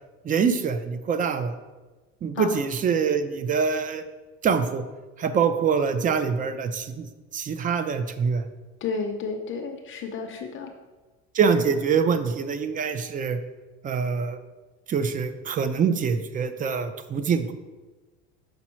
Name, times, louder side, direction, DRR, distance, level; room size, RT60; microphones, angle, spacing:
voice 1, 0.2-1.6 2.2-4.0 4.4-4.8 5.2-7.1 7.3-8.5 11.3-13.4 13.8-14.4 14.9-17.5, right 6 dB, 25° right, 10 dB, 0.5 m, -24 dB
voice 2, 8.8-10.7, left 5 dB, 40° left, 3 dB, 0.7 m, -31 dB
6.0 x 5.3 x 4.4 m, 1.2 s
supercardioid pair, 125°, 32 cm